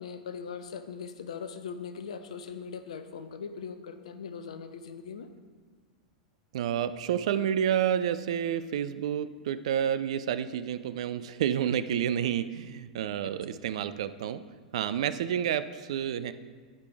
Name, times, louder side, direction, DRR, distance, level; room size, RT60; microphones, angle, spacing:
voice 1, 0.0-5.3 13.2-13.6, left 6 dB, 65° left, 10 dB, 0.5 m, -40 dB
voice 2, 6.5-14.4 14.7-16.3, right 9 dB, 60° right, 13 dB, 0.3 m, -29 dB
9.5 x 4.9 x 3.3 m, 1.5 s
figure-of-eight pair, 95°, 4 cm